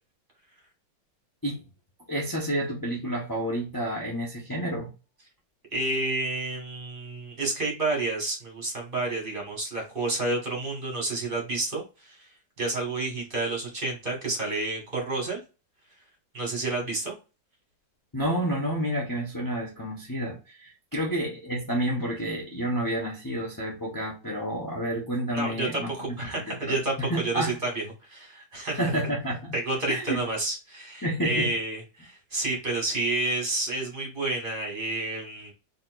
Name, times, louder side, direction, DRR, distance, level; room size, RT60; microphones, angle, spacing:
voice 1, 2.1-4.9 18.1-26.1 26.5-27.6 28.7-29.5 29.9-30.2 31.0-31.5, equal, 15° left, 0.8 m, -30 dB
voice 2, 5.7-12.3 12.6-15.4 16.3-17.1 25.3-28.8 29.5-35.5, right 2 dB, 30° right, 1.8 m, -30 dB
4.1 x 3.7 x 2.5 m
omnidirectional pair, 2.0 m